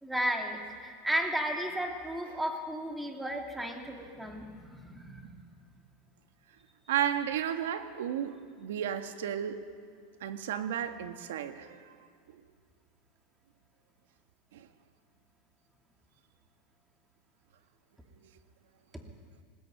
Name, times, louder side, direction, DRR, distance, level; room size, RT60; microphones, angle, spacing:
voice 1, 0.0-5.3, equal, 5° right, 2 dB, 2.5 m, -34 dB
voice 2, 6.9-9.6 10.2-11.9 14.5-14.7, right 9 dB, 90° right, 8 dB, 1.6 m, -33 dB
20.0 x 18.5 x 9.3 m, 2.1 s
supercardioid pair, 140°, 0 cm